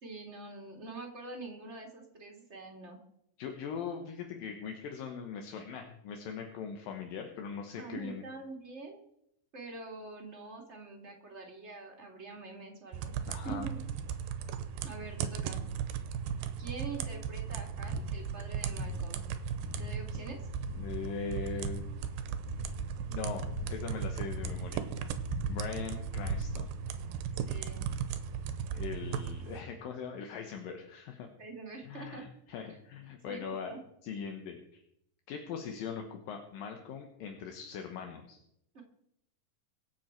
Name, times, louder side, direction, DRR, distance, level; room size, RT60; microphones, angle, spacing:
voice 1, 0.0-3.0 7.8-9.0 9.5-13.1 13.4-13.8 14.8-15.6 16.6-19.2 19.8-20.4 27.5-27.8 31.4-32.2 32.6-32.8 33.2-33.8 38.7-38.8, right 3 dB, 20° right, 1 dB, 2.1 m, -45 dB
voice 2, 3.4-8.2 13.3-13.7 20.7-21.9 23.1-24.8 25.4-26.8 28.7-31.3 31.8-33.7 34.0-34.8 35.3-38.4, left 6 dB, 75° left, 3 dB, 2.8 m, -41 dB
sound 1, 12.9-29.6, right 8 dB, 90° right, 2.6 m, -37 dB
sound 2, 17.8-26.9, left 5 dB, 50° left, 3.5 m, -43 dB
23.5 x 7.9 x 4.6 m, 0.76 s
omnidirectional pair, 4.1 m